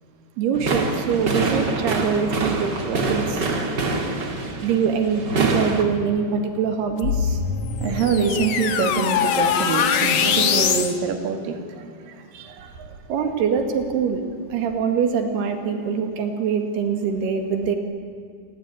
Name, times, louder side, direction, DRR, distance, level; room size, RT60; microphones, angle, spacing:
voice 1, 0.4-3.5 4.6-7.4 13.1-14.2 14.5-17.8, right 6 dB, 90° right, 5 dB, 4.2 m, -24 dB
sound 1, 0.5-5.8, right 3 dB, 35° right, 2.3 m, -25 dB
sound 2, 7.0-10.9, left 7 dB, 55° left, 2.2 m, -22 dB
voice 2, 7.8-13.0, right 5 dB, 65° right, 5 dB, 3.7 m, -25 dB
28.5 x 20.0 x 10.0 m, 2.2 s
omnidirectional pair, 4.5 m